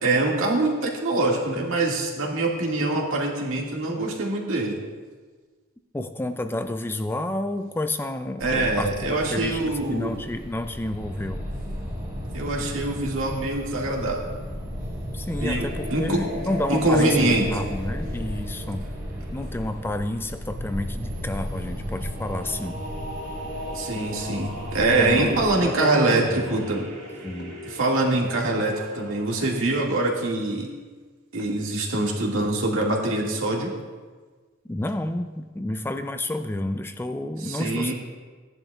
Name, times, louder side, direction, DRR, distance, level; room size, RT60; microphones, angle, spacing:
voice 1, 0.0-4.8 8.4-10.2 12.3-14.2 15.4-16.2 16.7-17.5 23.7-26.9 27.7-30.7 31.3-33.7 37.5-37.9, right 2 dB, 70° right, -2 dB, 1.9 m, -24 dB
voice 2, 5.9-11.4 15.1-18.8 19.3-22.8 25.0-26.6 27.2-27.6 34.7-37.9, left 1 dB, 10° left, 9 dB, 0.3 m, -30 dB
sound 1, 8.4-25.7, equal, 20° right, 2.7 m, -35 dB
sound 2, 15.3-19.9 22.0-29.8, left 1 dB, 90° right, 3.5 m, -38 dB
walking on a floor slowly, 25.4-25.7 27.4-27.8 29.4-29.7 31.4-31.8, left 1 dB, 80° left, 2.3 m, -47 dB
17.0 x 10.5 x 2.3 m, 1.4 s
head